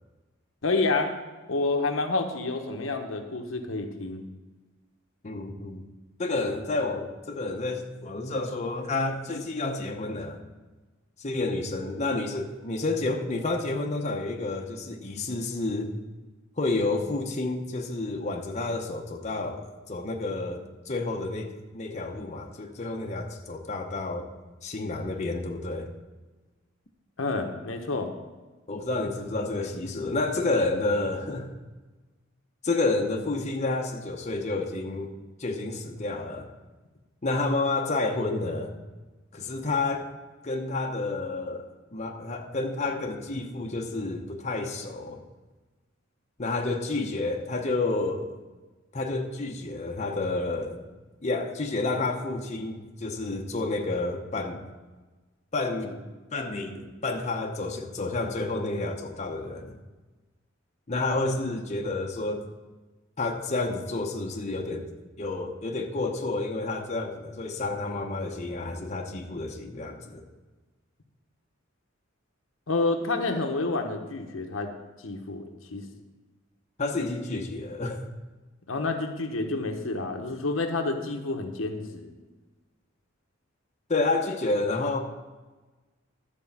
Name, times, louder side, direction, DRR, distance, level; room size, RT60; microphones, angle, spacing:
voice 1, 0.6-1.1 1.5-4.2 27.2-28.1 72.7-74.7 75.0-75.8 78.7-82.1, left 3 dB, 75° left, 4 dB, 1.1 m, -29 dB
voice 2, 5.2-5.8 6.2-10.4 11.2-15.9 16.6-24.2 24.6-25.9 28.7-31.5 32.6-35.1 35.4-36.5 37.2-38.7 39.3-40.1 40.4-45.2 46.4-48.3 48.9-50.8 51.2-54.6 55.5-56.0 56.3-59.8 60.9-62.4 63.2-64.9 65.2-70.2 76.8-78.0 83.9-85.0, left 2 dB, 35° left, 1 dB, 0.9 m, -30 dB
12.0 x 4.6 x 7.3 m, 1.2 s
head